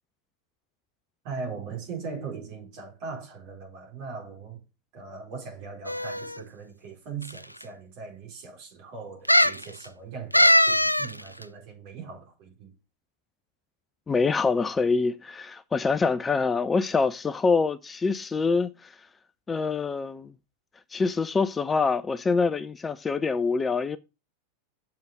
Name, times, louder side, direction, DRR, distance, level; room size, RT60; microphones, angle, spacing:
voice 1, 1.2-4.6 4.9-12.7, right 5 dB, 45° right, 4.1 m, -39 dB
sound 1, 5.9-6.4 7.2-7.3 7.6-7.7 9.3-9.6 10.3-11.1 11.4-11.5, equal, 90° left, 0.3 m, -20 dB
voice 2, 14.1-18.9 19.5-20.3 20.9-24.0, left 4 dB, 15° left, 0.4 m, -25 dB
7.1 x 5.7 x 4.9 m
figure-of-eight pair, 90°, 0 cm